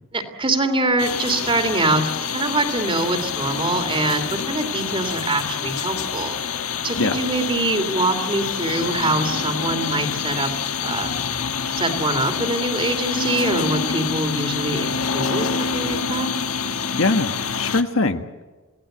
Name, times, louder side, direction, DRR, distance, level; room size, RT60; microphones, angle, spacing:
voice 1, 0.1-6.4 6.8-10.5 10.8-11.1 11.7-16.3, right 2 dB, 25° right, 7 dB, 2.9 m, -24 dB
sound 1, 1.0-17.8, left 6 dB, 90° left, 1.5 m, -26 dB
voice 2, 16.9-18.4, left 2 dB, 65° left, 7 dB, 1.5 m, -22 dB
28.5 x 18.0 x 7.9 m, 1.3 s
head